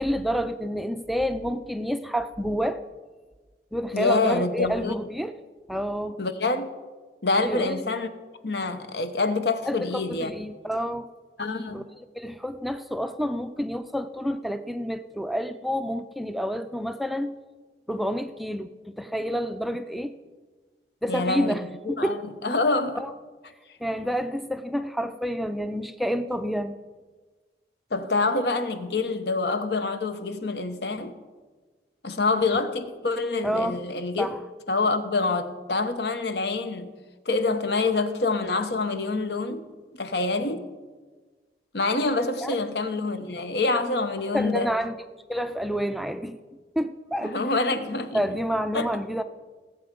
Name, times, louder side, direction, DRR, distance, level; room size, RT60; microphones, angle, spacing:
voice 1, 0.0-2.8 3.7-5.4 5.7-6.2 7.4-7.8 9.6-11.1 11.7-11.8 12.1-17.4 17.9-20.1 21.0-21.6 21.9-22.2 22.9-23.1 23.8-26.7 33.4-33.8 34.2-34.4 42.4-42.6 44.3-44.9 45.3-46.4 46.8-47.4 48.1-49.2, equal, ahead, 0.4 m, -29 dB
voice 2, 3.9-4.9 6.2-6.7 7.2-8.1 8.4-10.3 11.4-11.9 21.1-21.6 21.9-23.0 27.9-31.1 32.0-34.3 34.7-36.9 37.3-39.6 39.9-40.6 41.7-44.7 47.2-48.2 48.7-48.9, left 3 dB, 65° left, 1.0 m, -26 dB
18.0 x 7.7 x 5.3 m
head